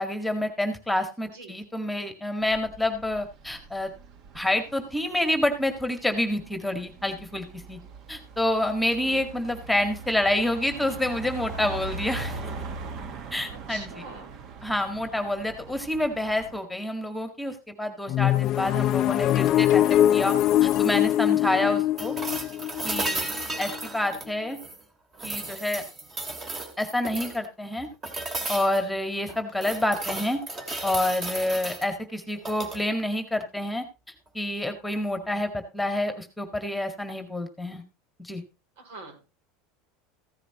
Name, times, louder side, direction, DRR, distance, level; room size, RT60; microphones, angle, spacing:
voice 1, 0.0-3.9 4.3-7.8 8.1-12.5 13.3-13.9 14.6-19.8 20.1-22.1 22.8-23.3 23.6-24.6 25.2-25.8 26.8-27.9 28.5-30.4 30.8-33.8 34.3-37.8 38.2-38.4, left 1 dB, 5° left, 7 dB, 1.9 m, -28 dB
sound 1, 2.4-16.6, right 4 dB, 45° right, 1.5 m, -41 dB
voice 2, 8.7-9.2 13.5-14.3 29.6-29.8 38.8-39.2, right 3 dB, 80° right, 4 dB, 5.3 m, -44 dB
sound 2, 18.1-23.9, left 12 dB, 40° left, 0.5 m, -22 dB
sound 3, 22.0-24.8 25.2-27.4 28.0-28.8 29.3-31.9 32.4-32.8 34.8-34.9, right 2 dB, 25° right, 2.6 m, -34 dB
15.5 x 9.9 x 3.0 m, 0.27 s
supercardioid pair, 130°, 0 cm